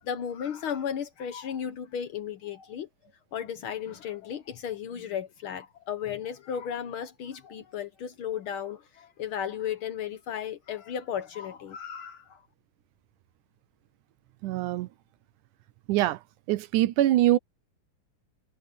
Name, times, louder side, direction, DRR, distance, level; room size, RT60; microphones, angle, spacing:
voice 1, 0.0-2.9 3.3-12.4, left 8 dB, 90° left, 1.1 m, -35 dB
voice 2, 14.4-14.9 15.9-16.2 16.5-17.4, right 14 dB, 75° right, 2.0 m, -23 dB
omnidirectional pair, 3.9 m